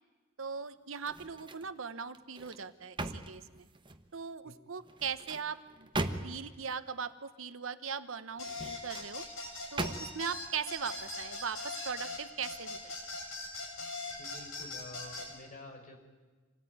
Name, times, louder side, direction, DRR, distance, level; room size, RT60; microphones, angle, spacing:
voice 1, 0.4-3.6 4.1-5.9 6.2-9.2 9.7-12.9, right 6 dB, 70° right, 12 dB, 1.0 m, -39 dB
sound 1, 1.0-1.7 2.1-4.1 4.8-6.6 8.4-9.1 9.8-10.4 10.9-11.1, right 2 dB, 25° right, 1.3 m, -39 dB
sound 2, 8.4-15.3, left 2 dB, 75° left, 7.5 m, -41 dB
voice 2, 14.1-16.0, left 2 dB, 40° left, 3 dB, 4.7 m, -49 dB
26.5 x 18.0 x 9.4 m, 1.3 s
head